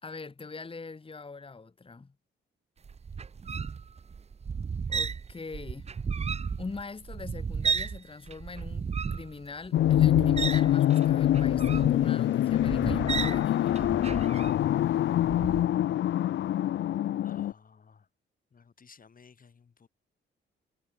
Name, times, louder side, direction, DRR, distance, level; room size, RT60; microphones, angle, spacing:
voice 1, 0.0-2.1 4.9-5.9 6.2-13.9, left 4 dB, 25° left, 1.6 m, -43 dB
sound 1, 2.8-8.0 8.3-14.8 15.2-15.6, right 6 dB, 30° right, 0.6 m, -34 dB
sound 2, 9.7-17.5, left 12 dB, 65° left, 0.5 m, -25 dB
voice 2, 17.2-18.1 18.5-19.9, left 5 dB, 40° left, 1.8 m, -56 dB
cardioid pair, 80°, 21 cm